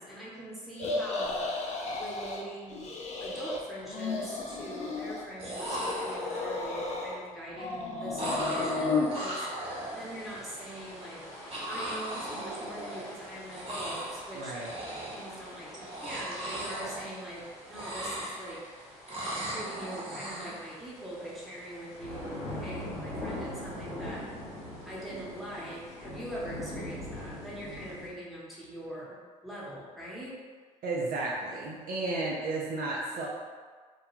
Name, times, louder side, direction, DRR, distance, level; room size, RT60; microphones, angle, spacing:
voice 1, 0.0-1.4 1.9-2.8 3.2-9.7 9.9-11.3 11.7-14.5 15.1-18.7 19.3-24.2 24.8-30.4, right 1 dB, ahead, -7 dB, 1.0 m, -42 dB
sound 1, 0.8-2.4 2.7-3.6 3.8-5.2 5.6-7.2 7.5-9.1, left 3 dB, 40° left, 0.5 m, -33 dB
sound 2, 3.0-3.2 3.5-4.1 5.1-5.2 5.4-6.6 8.2-10.4 11.5-13.2 13.5-14.2 14.5-15.3 15.8-17.4 17.7-18.7 19.1-20.6, right 1 dB, 30° right, 0.9 m, -37 dB
sound 3, 9.6-28.1, left 1 dB, 75° left, 1.0 m, -44 dB
voice 2, 14.3-14.7 30.8-33.3, right 2 dB, 55° right, -4 dB, 0.5 m, -33 dB
2.3 x 2.2 x 3.1 m, 1.5 s
hypercardioid pair, 55°, 18 cm